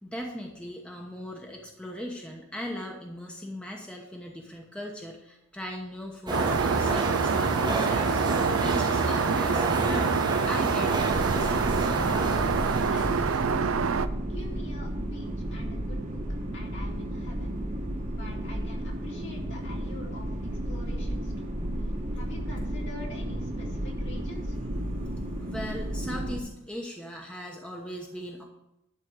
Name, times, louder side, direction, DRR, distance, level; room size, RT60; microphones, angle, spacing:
voice 1, 0.0-10.1 10.5-11.9 25.4-28.4, equal, 5° left, 0 dB, 1.1 m, -39 dB
sound 1, 6.3-13.7, right 2 dB, 20° right, 1.0 m, -30 dB
Aircraft, 6.3-14.1, right 6 dB, 70° right, 0.5 m, -26 dB
sound 2, 10.9-26.4, right 1 dB, 35° right, 1.3 m, -33 dB
voice 2, 12.9-13.8 14.2-16.2 16.5-17.5 18.1-20.3 20.7-21.5 22.1-24.6, left 1 dB, 55° left, -1 dB, 2.6 m, -45 dB
11.5 x 4.4 x 7.9 m, 0.87 s
head